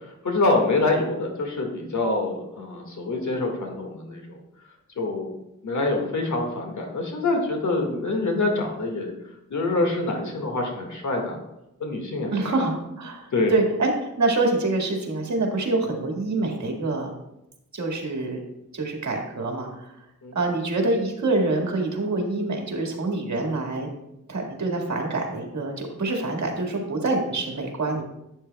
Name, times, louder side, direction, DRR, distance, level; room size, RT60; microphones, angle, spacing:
voice 1, 0.2-4.4 5.0-9.1 9.5-11.4 11.8-12.5 13.3-13.6 20.2-20.4, left 2 dB, 70° left, 2 dB, 1.8 m, -25 dB
voice 2, 12.3-13.9 14.2-17.1 17.7-18.4 18.7-19.9 20.3-23.9 24.3-28.0, right 2 dB, 65° right, 1 dB, 1.9 m, -26 dB
11.5 x 8.6 x 2.3 m, 0.90 s
wide cardioid pair, 85°, 31 cm